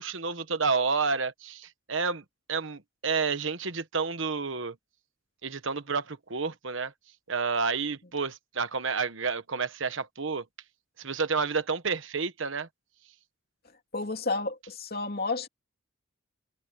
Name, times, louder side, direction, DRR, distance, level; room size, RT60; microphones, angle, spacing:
voice 1, 0.0-2.2 2.5-4.7 5.4-6.9 7.3-10.4 11.0-12.7, right 4 dB, 60° right, 1.2 m, -30 dB
voice 2, 13.9-15.5, left 3 dB, 45° left, 3.0 m, -31 dB
head